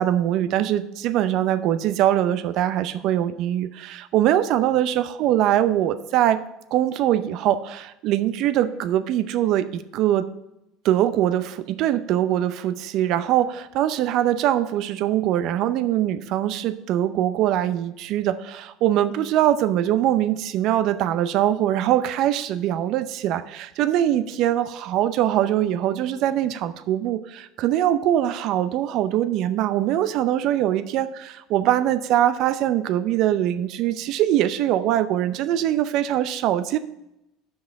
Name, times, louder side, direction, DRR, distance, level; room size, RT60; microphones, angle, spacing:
voice 1, 0.0-6.4 6.7-10.3 10.8-36.8, right 12 dB, 60° right, 12 dB, 0.6 m, -22 dB
5.9 x 5.3 x 6.9 m, 0.86 s
supercardioid pair, 90°, 0 cm